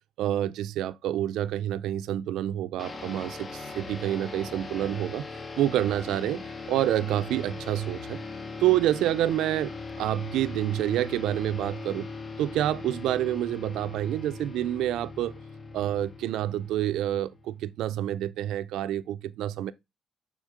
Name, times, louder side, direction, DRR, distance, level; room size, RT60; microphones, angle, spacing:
voice 1, 0.2-5.2 5.6-6.4 6.7-8.2 8.6-12.1 12.4-15.3 15.7-19.7, right 12 dB, 85° right, 0.4 m, -28 dB
sound 1, 2.8-17.6, left 4 dB, 35° left, 0.8 m, -40 dB
6.5 x 3.5 x 4.9 m
cardioid pair, 90°, 0 cm